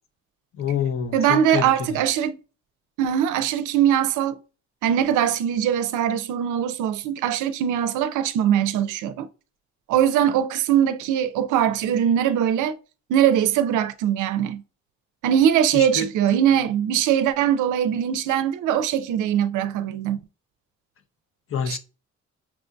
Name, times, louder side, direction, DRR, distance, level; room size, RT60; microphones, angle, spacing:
voice 1, 0.6-1.7 15.7-16.1 21.5-21.8, left 7 dB, 45° left, 0.6 m, -26 dB
voice 2, 1.1-2.4 3.0-4.4 4.8-9.3 9.9-12.8 13.1-14.6 15.2-20.2 21.7-21.8, right 9 dB, 85° right, 0.5 m, -21 dB
5.8 x 2.5 x 2.2 m
cardioid pair, 90°, 30 cm